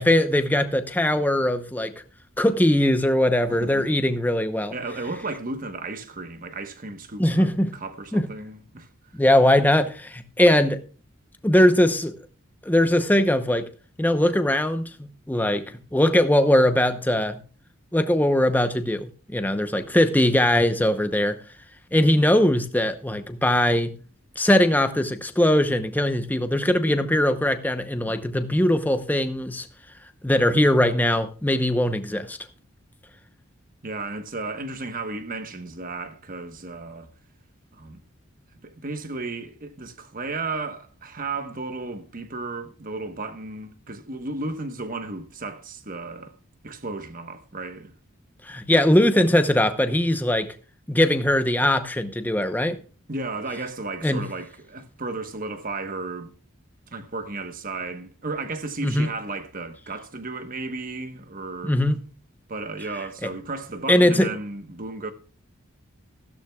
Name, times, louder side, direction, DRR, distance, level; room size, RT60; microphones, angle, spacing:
voice 1, 0.0-1.9 2.4-4.7 7.2-7.7 8.1-8.3 9.1-10.8 11.4-12.1 12.6-13.7 14.0-15.6 15.9-17.4 17.9-21.3 21.9-23.9 24.4-29.7 30.2-32.4 48.5-50.5 50.9-52.8 54.0-54.2 58.8-59.1 61.6-62.0 63.9-64.3, left 1 dB, 10° left, 0.8 m, -20 dB
voice 2, 3.5-4.0 4.7-8.9 33.8-37.1 37.7-38.0 38.6-46.3 46.6-48.0 53.1-56.3 56.9-61.8 62.5-65.1, right 3 dB, 40° right, 1.2 m, -34 dB
15.0 x 12.5 x 2.3 m
head